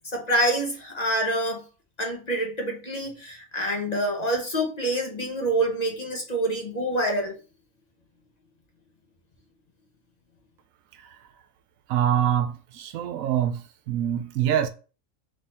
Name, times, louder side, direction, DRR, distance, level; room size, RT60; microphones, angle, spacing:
voice 1, 0.1-1.6 2.0-7.3, right 1 dB, 35° left, 0.9 m, -26 dB
voice 2, 11.9-14.7, right 10 dB, 85° right, 1.0 m, -25 dB
3.8 x 3.2 x 4.3 m
omnidirectional pair, 1.4 m